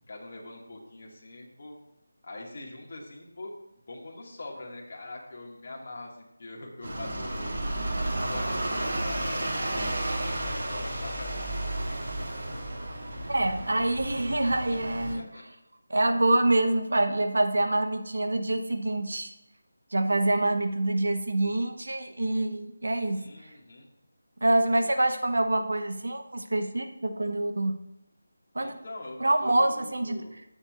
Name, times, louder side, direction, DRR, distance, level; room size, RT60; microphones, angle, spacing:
voice 1, 0.1-1.8 2.2-3.5 3.9-12.0 15.1-15.4 16.3-16.4 23.1-23.9 28.6-30.4, left 2 dB, 45° left, -2 dB, 2.2 m, -43 dB
sound 1, 6.8-15.1, right 1 dB, 55° right, 3.6 m, -32 dB
voice 2, 13.3-15.3 15.9-19.3 19.9-23.2 24.4-27.8 28.5-28.8 29.2-30.3, right 2 dB, 80° right, 7 dB, 1.2 m, -26 dB
16.0 x 7.1 x 2.6 m, 0.87 s
figure-of-eight pair, 170°, 0 cm